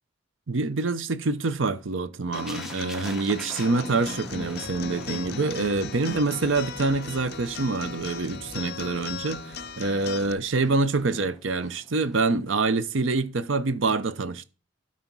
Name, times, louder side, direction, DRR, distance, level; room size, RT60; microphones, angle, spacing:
voice 1, 0.5-14.4, right 3 dB, 80° right, 0.8 m, -26 dB
Acoustic guitar, 2.3-10.3, left 6 dB, 55° left, 0.6 m, -38 dB
sound 1, 2.3-12.2 12.5-12.7, equal, 5° right, 1.2 m, -44 dB
13.0 x 4.4 x 6.1 m
head